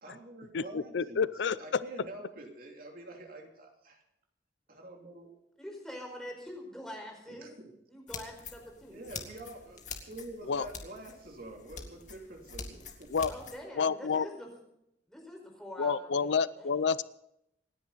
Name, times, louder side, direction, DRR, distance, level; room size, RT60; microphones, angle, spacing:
voice 1, 0.0-1.3 1.6-4.0 4.7-5.3 7.3-7.7 8.9-13.1, right 1 dB, 55° right, 2 dB, 2.9 m, -47 dB
voice 2, 0.5-1.8 10.5-10.7 13.1-13.3 13.8-14.3 15.8-17.0, left 5 dB, 75° left, 17 dB, 0.5 m, -29 dB
voice 3, 5.6-7.5 7.9-9.0 13.3-14.5 15.1-16.7, equal, 5° left, 1 dB, 4.7 m, -44 dB
sound 1, 8.1-13.6, left 5 dB, 45° left, 2.2 m, -46 dB
27.0 x 10.0 x 4.0 m, 0.80 s
head